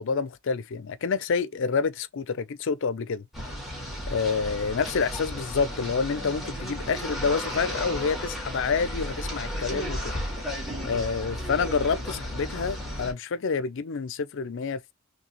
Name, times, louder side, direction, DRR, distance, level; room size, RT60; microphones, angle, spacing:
voice 1, 0.0-3.2 4.1-10.1 10.8-14.8, left 5 dB, 60° left, 0.5 m, -28 dB
sound 1, 3.3-13.1, equal, ahead, 2.0 m, -34 dB
4.0 x 3.3 x 3.0 m
head